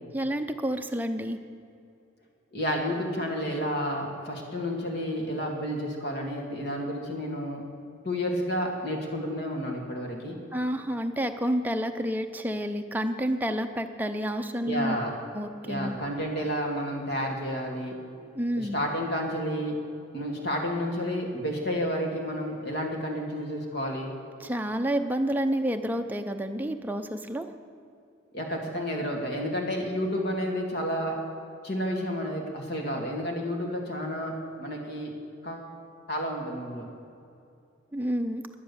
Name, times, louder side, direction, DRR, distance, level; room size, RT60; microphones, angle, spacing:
voice 1, 0.1-1.4 10.5-15.0 15.3-16.0 18.4-18.8 24.4-27.5 37.9-38.4, equal, 10° right, 5 dB, 0.6 m, -29 dB
voice 2, 2.5-7.6 8.0-10.4 14.6-15.2 15.6-18.0 18.5-19.8 20.1-24.1 28.3-31.2 31.6-35.1 35.4-35.7 36.1-36.9, equal, 50° left, 1 dB, 2.1 m, -31 dB
11.0 x 10.5 x 6.9 m, 2.5 s
head